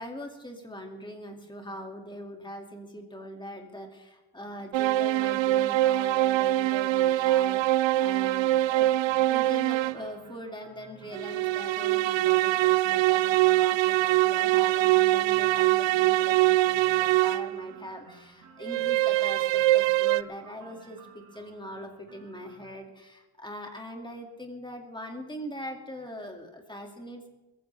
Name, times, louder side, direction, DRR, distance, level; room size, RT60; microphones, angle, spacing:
voice 1, 0.0-8.9 9.3-27.3, equal, 10° left, 3 dB, 2.3 m, -41 dB
sound 1, 4.7-10.1 11.1-17.6 18.6-20.2, right 17 dB, 65° right, 0.5 m, -23 dB
sound 2, 8.8-22.7, right 5 dB, 40° right, 5.0 m, -54 dB
21.5 x 14.5 x 3.4 m, 1.1 s
cardioid pair, 150°, 50 cm